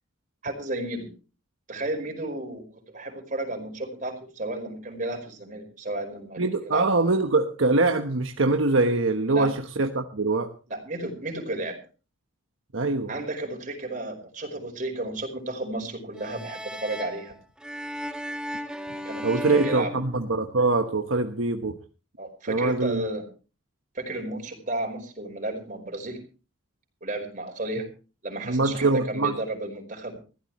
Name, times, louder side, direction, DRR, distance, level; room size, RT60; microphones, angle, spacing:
voice 1, 0.4-1.1 1.7-7.2 9.3-9.5 10.7-11.8 13.1-17.3 18.8-19.9 22.2-23.2 23.9-26.2 27.0-27.9 28.2-30.2, right 1 dB, 40° right, 4 dB, 5.2 m, -33 dB
voice 2, 6.4-10.5 12.7-13.1 19.2-21.8 22.5-23.0 28.4-29.3, right 3 dB, 80° right, 5 dB, 1.2 m, -23 dB
sound 1, 16.2-20.8, equal, 5° right, 1.4 m, -36 dB
21.5 x 15.5 x 3.1 m, 0.35 s
head